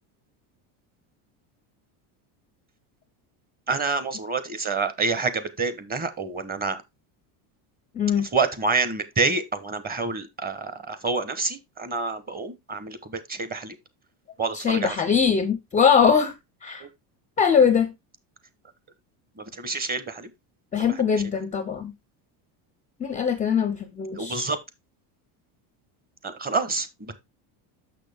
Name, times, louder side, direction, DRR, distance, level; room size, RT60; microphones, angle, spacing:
voice 1, 3.7-6.8 8.3-13.7 14.4-15.0 16.8-16.9 19.4-20.3 20.7-21.0 24.1-24.6 26.2-27.1, right 4 dB, 20° right, 0.9 m, -28 dB
voice 2, 7.9-8.3 14.5-16.9 17.4-17.9 20.7-21.9 23.0-24.5, left 7 dB, 15° left, 0.4 m, -22 dB
6.3 x 6.2 x 3.4 m
supercardioid pair, 130°, 48 cm